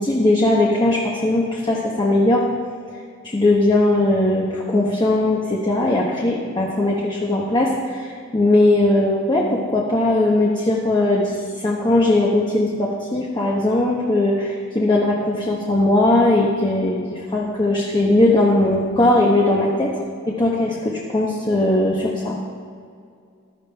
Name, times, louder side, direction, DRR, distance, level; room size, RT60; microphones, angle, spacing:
voice 1, 0.0-2.6 3.2-22.4, left 2 dB, 20° left, -2 dB, 0.9 m, -19 dB
14.5 x 12.0 x 3.4 m, 2.2 s
head